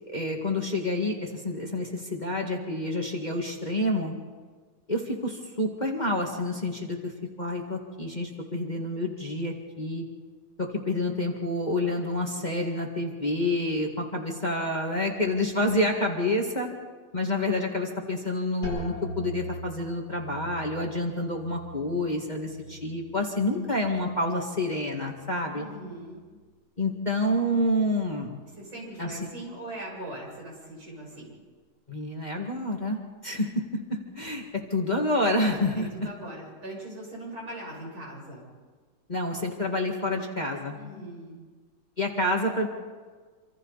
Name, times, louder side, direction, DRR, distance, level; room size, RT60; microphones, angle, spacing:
voice 1, 0.1-4.1 4.9-7.1 7.4-10.0 10.6-16.7 17.1-25.7 26.8-28.3 29.0-29.2 31.9-34.4 34.7-36.1 39.1-40.8 42.0-42.7, left 1 dB, 20° left, 0 dB, 2.0 m, -28 dB
sound 1, 18.6-24.3 24.6-25.3 25.8-26.2, right 1 dB, 55° left, 8.5 m, -41 dB
voice 2, 25.5-26.2 28.5-31.3 35.8-38.5 40.8-41.4, right 1 dB, 80° right, -3 dB, 8.7 m, -40 dB
27.0 x 26.5 x 4.2 m, 1.5 s
omnidirectional pair, 2.3 m